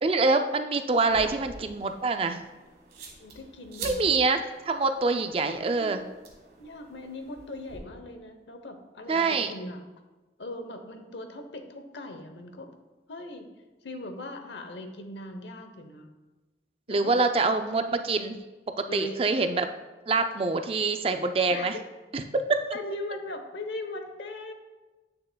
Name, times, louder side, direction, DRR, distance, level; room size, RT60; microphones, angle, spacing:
voice 1, 0.0-2.4 3.8-6.0 9.1-9.5 16.9-18.4 18.8-19.7 20.1-21.8 22.1-22.2 22.5-22.7, right 3 dB, 30° right, 7 dB, 0.4 m, -25 dB
sound 1, 0.9-7.8, right 3 dB, 60° right, 1.4 m, -46 dB
voice 2, 3.2-4.2 5.4-5.9 6.6-9.8 10.4-12.7 13.1-13.5 13.8-16.1 16.9-17.2 18.9-19.2 21.5-21.8 22.7-24.5, left 1 dB, 90° left, 6 dB, 0.8 m, -39 dB
8.9 x 6.6 x 2.2 m, 1.2 s
head